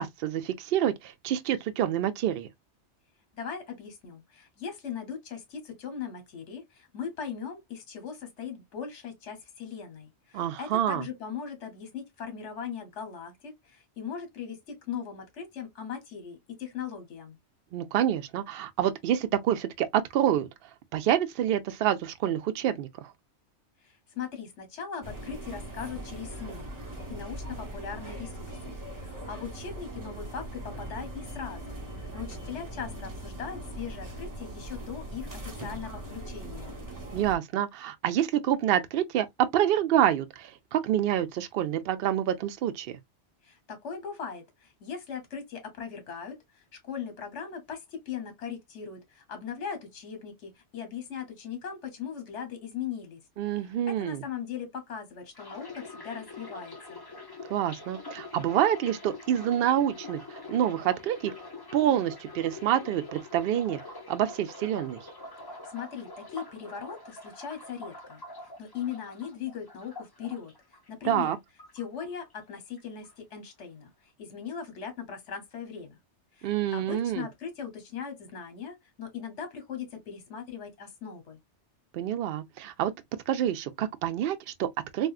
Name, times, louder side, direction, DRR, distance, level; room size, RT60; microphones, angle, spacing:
voice 1, 0.0-2.5 10.3-11.1 17.7-20.5 20.9-23.1 37.1-43.0 53.4-54.2 57.5-61.4 61.7-63.8 64.1-65.0 71.0-71.4 76.4-77.2 81.9-82.9 83.3-85.1, right 11 dB, 65° right, 0.7 m, -27 dB
voice 2, 3.3-17.4 23.8-36.8 43.4-53.2 53.9-57.0 65.6-71.4 71.7-76.0 76.3-81.4, left 7 dB, 75° left, 1.3 m, -39 dB
sound 1, 25.0-37.4, right 1 dB, 20° right, 1.0 m, -40 dB
sound 2, 55.3-71.3 71.6-72.5 72.8-73.1, left 2 dB, 25° left, 0.5 m, -45 dB
3.5 x 2.4 x 2.3 m
omnidirectional pair, 1.2 m